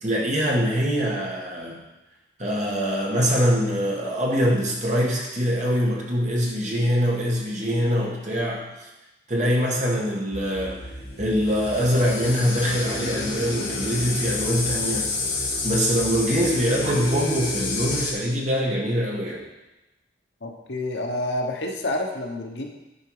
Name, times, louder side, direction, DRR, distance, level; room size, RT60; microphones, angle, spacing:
voice 1, 0.0-1.8 2.4-8.6 9.3-10.8 11.2-15.1 15.6-19.4, equal, 40° right, -2 dB, 1.6 m, -23 dB
sound 1, 10.3-18.1, left 3 dB, 40° left, 1.5 m, -29 dB
voice 2, 20.4-22.7, left 1 dB, 65° left, 2 dB, 1.1 m, -28 dB
10.0 x 4.9 x 4.9 m, 1.0 s
head